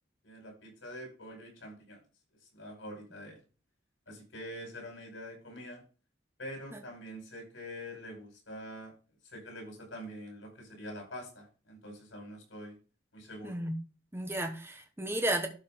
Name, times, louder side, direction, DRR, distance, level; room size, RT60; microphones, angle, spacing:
voice 1, 0.2-2.0 2.5-3.4 4.1-5.8 6.4-8.9 9.3-12.8 13.1-13.6, equal, 85° left, 5.3 m, -45 dB
voice 2, 13.4-13.8 14.1-15.5, right 1 dB, 15° right, 1.1 m, -33 dB
12.0 x 5.0 x 3.7 m
head